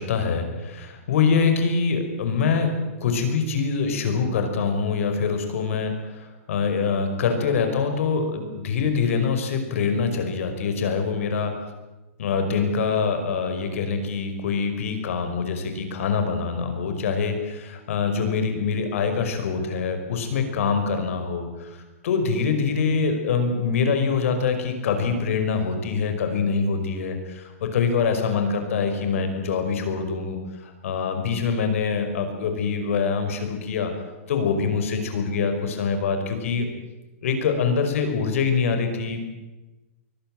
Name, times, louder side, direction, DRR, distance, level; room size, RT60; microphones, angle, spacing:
voice 1, 0.0-2.7 3.0-11.5 12.2-21.8 22.0-33.9 34.3-36.7 37.2-39.3, left 5 dB, 65° left, 6 dB, 5.4 m, -24 dB
23.5 x 17.5 x 9.1 m, 1.1 s
hypercardioid pair, 150°, 8 cm